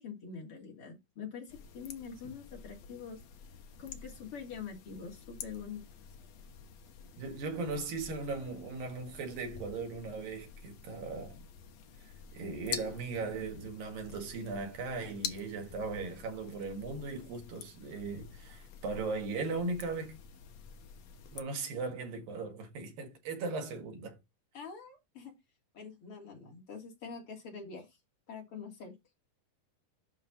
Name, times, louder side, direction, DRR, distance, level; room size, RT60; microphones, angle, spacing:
voice 1, 0.0-3.2 3.8-5.8 24.5-25.3 25.7-27.9 28.3-29.0, left 6 dB, 40° left, 3.7 m, -45 dB
sound 1, 1.5-21.4, left 7 dB, 60° left, 2.2 m, -48 dB
voice 2, 7.2-11.4 12.3-20.2 21.3-24.2, right 3 dB, 90° right, 3.8 m, -38 dB
11.0 x 5.6 x 4.1 m
omnidirectional pair, 3.9 m